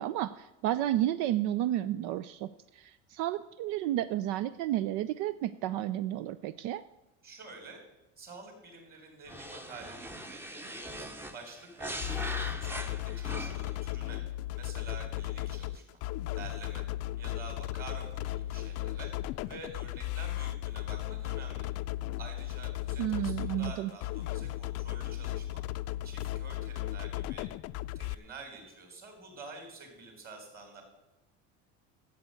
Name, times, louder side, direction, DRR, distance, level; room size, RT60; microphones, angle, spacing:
voice 1, 0.0-6.8 23.0-23.9, right 13 dB, 75° right, 14 dB, 0.6 m, -32 dB
voice 2, 7.2-7.8 8.2-14.2 14.5-16.0 16.3-16.9 17.2-21.7 22.2-25.6 26.0-27.5 27.9-30.8, right 3 dB, 30° right, 3 dB, 4.0 m, -48 dB
sound 1, 9.3-13.8, right 1 dB, 5° right, 0.8 m, -41 dB
sound 2, 12.0-28.1, left 15 dB, 55° left, 0.4 m, -36 dB
12.5 x 8.5 x 7.7 m, 1.0 s
cardioid pair, 155°, 30 cm